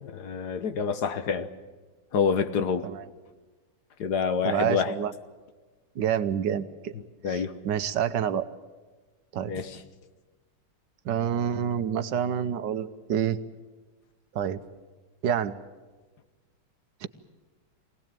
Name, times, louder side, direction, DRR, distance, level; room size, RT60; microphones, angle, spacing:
voice 1, 0.0-1.5 2.1-2.9 4.0-4.9 7.2-7.5 9.5-9.8, left 6 dB, 65° left, 11 dB, 1.6 m, -27 dB
voice 2, 4.4-5.1 5.9-6.9 7.3-8.5 9.3-9.5 11.0-13.4 14.3-14.6 15.2-15.6 17.0-17.1, right 9 dB, 75° right, 11 dB, 1.6 m, -28 dB
24.5 x 18.0 x 9.0 m, 1.3 s
omnidirectional pair, 2.0 m